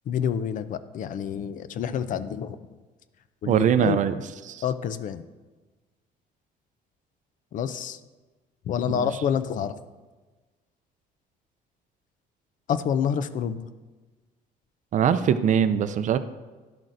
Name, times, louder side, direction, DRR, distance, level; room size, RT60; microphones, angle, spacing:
voice 1, 0.1-2.6 3.4-4.0 4.6-5.2 7.5-8.0 8.7-9.8 12.7-13.7, left 8 dB, 50° left, 13 dB, 0.4 m, -28 dB
voice 2, 3.5-4.1 4.5-4.6 8.9-9.1 14.9-16.2, right 8 dB, 50° right, 12 dB, 0.4 m, -22 dB
11.5 x 7.4 x 2.6 m, 1.3 s
cardioid pair, 110°, 17 cm